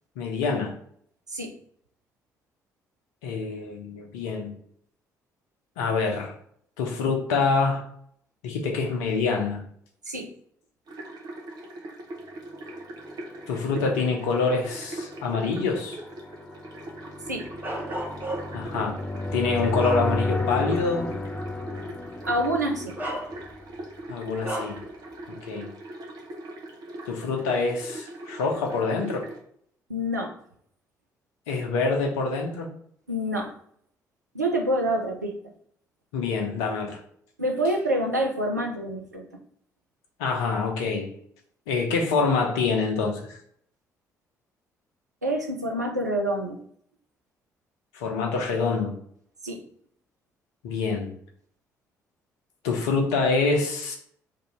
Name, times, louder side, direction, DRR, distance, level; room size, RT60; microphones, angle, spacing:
voice 1, 0.2-0.7 3.2-4.5 5.8-6.3 6.8-7.8 8.4-9.6 13.5-16.0 18.5-18.9 19.3-21.1 24.1-24.8 25.3-25.7 27.1-29.2 31.5-32.7 36.1-37.0 40.2-41.1 41.7-43.4 47.9-48.9 50.6-51.1 52.6-54.0, left 4 dB, 70° left, 1 dB, 0.6 m, -26 dB
sound 1, 10.9-29.4, right 1 dB, 45° right, 0.7 m, -41 dB
sound 2, 13.2-24.0, left 2 dB, 15° left, 0.4 m, -33 dB
Bark, 17.6-18.7 19.3-20.5 21.0-21.1 22.3-22.4 23.0-23.7 24.4-24.9, right 1 dB, 20° right, 1.2 m, -34 dB
voice 2, 22.2-23.1 29.9-30.3 33.1-33.5 34.3-35.3 37.4-39.2 45.2-46.6 49.4-49.6, right 1 dB, 90° right, 2 dB, 0.4 m, -27 dB
2.7 x 2.6 x 4.2 m, 0.64 s
figure-of-eight pair, 45°, 9 cm